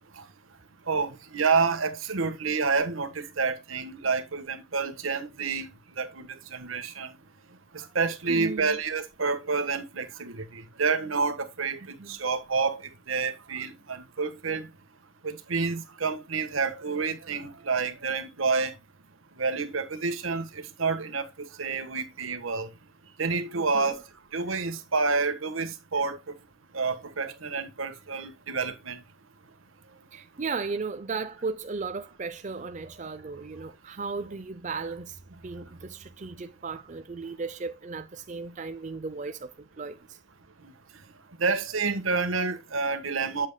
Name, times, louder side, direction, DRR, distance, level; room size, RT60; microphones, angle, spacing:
voice 1, 0.9-5.7 6.0-7.1 7.7-11.8 12.1-12.8 13.1-14.7 15.2-18.7 19.4-21.3 21.6-22.7 23.2-24.0 24.3-26.2 26.7-29.0 41.4-43.5, right 4 dB, 85° right, 1.3 m, -28 dB
voice 2, 8.3-8.8 12.0-12.2 23.6-24.0 30.1-40.2, right 4 dB, 35° right, 0.5 m, -36 dB
8.2 x 7.7 x 2.2 m
head